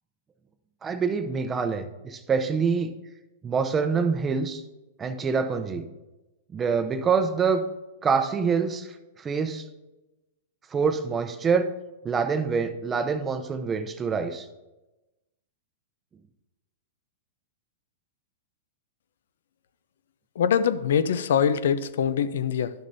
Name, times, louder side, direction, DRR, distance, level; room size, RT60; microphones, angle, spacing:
voice 1, 0.8-2.9 3.4-4.6 5.0-5.8 6.5-7.6 8.0-8.9 9.2-9.6 10.7-11.7 12.0-14.5, right 5 dB, 20° right, 8 dB, 0.6 m, -25 dB
voice 2, 20.4-22.7, left 8 dB, 75° left, 13 dB, 0.5 m, -23 dB
11.5 x 6.6 x 2.7 m, 1.0 s
hypercardioid pair, 135°, 0 cm